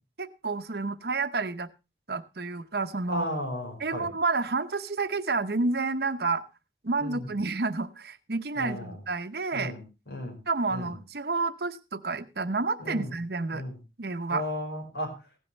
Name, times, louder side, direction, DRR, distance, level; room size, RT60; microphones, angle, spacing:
voice 1, 0.2-1.7 2.1-3.3 3.8-6.4 6.8-9.7 10.5-13.6 14.0-14.5, right 3 dB, 60° right, 12 dB, 0.8 m, -30 dB
voice 2, 3.1-4.1 7.0-7.3 8.5-8.9 9.5-10.4 10.7-10.9 12.8-13.1 13.5-13.8 14.3-15.1, left 1 dB, 75° left, 1 dB, 5.1 m, -35 dB
16.0 x 11.0 x 3.3 m, 0.28 s
head